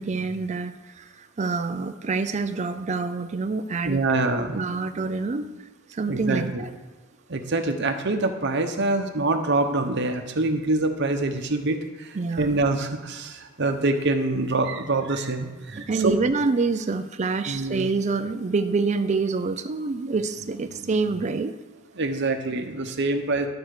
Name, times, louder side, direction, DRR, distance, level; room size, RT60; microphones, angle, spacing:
voice 1, 0.0-4.0 4.5-5.6 5.9-6.7 12.2-12.6 15.7-21.6, right 4 dB, 35° right, 9 dB, 0.4 m, -27 dB
voice 2, 3.8-4.6 6.1-6.6 7.3-16.2 17.5-17.9 22.0-23.5, right 2 dB, 60° right, 5 dB, 0.9 m, -25 dB
11.5 x 4.5 x 6.6 m, 1.3 s
head